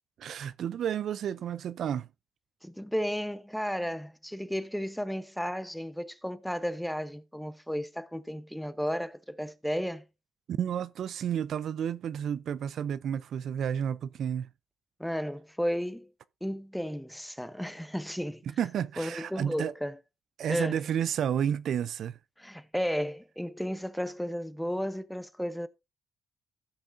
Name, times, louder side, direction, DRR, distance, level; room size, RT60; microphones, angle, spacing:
voice 1, 0.2-2.1 10.5-14.5 18.6-19.7 20.4-22.2, right 9 dB, 65° right, 0.4 m, -31 dB
voice 2, 2.6-10.0 15.0-16.1 16.4-18.4 19.0-20.0 20.5-20.8 22.4-25.7, equal, ahead, 0.7 m, -33 dB
15.5 x 6.4 x 2.6 m
cardioid pair, 90°, 0 cm